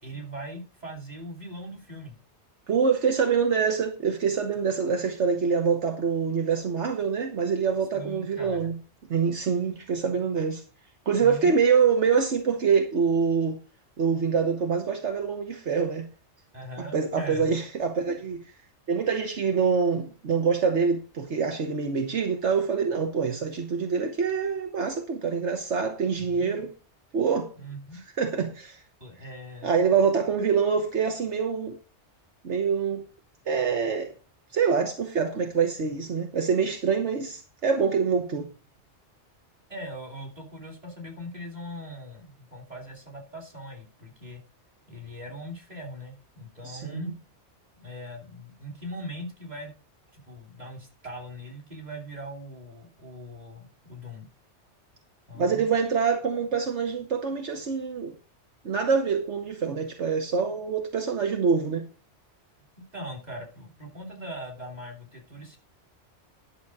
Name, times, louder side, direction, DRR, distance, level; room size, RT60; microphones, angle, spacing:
voice 1, 0.0-2.2 7.9-8.7 11.2-11.5 16.5-17.5 26.2-26.7 27.6-28.0 29.0-29.7 39.7-44.4 44.9-47.1 47.8-49.7 50.1-54.3 55.3-55.7 62.9-65.6, equal, 35° right, 3.3 m, -40 dB
voice 2, 2.7-8.7 9.1-10.6 11.1-13.6 14.0-16.0 16.9-18.4 18.9-26.7 27.1-27.5 28.2-28.8 29.6-31.8 32.4-33.0 33.5-34.1 34.5-38.5 46.6-47.0 55.3-58.2 58.6-61.8, right 6 dB, 75° right, 1.5 m, -25 dB
11.5 x 6.6 x 4.7 m
omnidirectional pair, 1.2 m